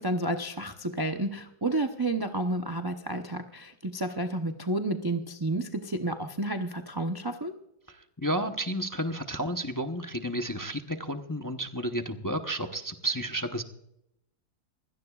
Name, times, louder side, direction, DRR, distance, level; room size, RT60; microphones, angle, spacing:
voice 1, 0.0-7.5, right 1 dB, 35° right, 5 dB, 0.3 m, -31 dB
voice 2, 8.2-13.6, right 1 dB, 20° left, 5 dB, 0.5 m, -31 dB
22.0 x 17.0 x 2.4 m, 0.78 s
omnidirectional pair, 1.8 m